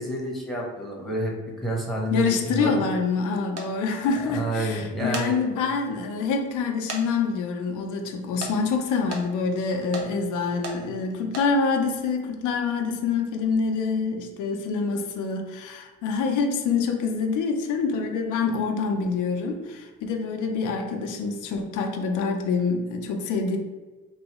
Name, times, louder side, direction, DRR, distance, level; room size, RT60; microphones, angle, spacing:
voice 1, 0.0-2.8 4.2-5.4, right 1 dB, ahead, -2 dB, 0.9 m, -29 dB
voice 2, 2.1-23.6, left 4 dB, 85° left, 3 dB, 0.5 m, -26 dB
sound 1, 3.6-3.7 4.9-5.3 5.9-6.0 6.9-7.0 7.3-7.4 8.4-8.5 9.1-9.2 9.9-10.1 10.6-10.8 11.2-11.5, right 3 dB, 55° right, 0.7 m, -34 dB
3.1 x 2.6 x 3.0 m, 1.3 s
cardioid pair, 90°, 30 cm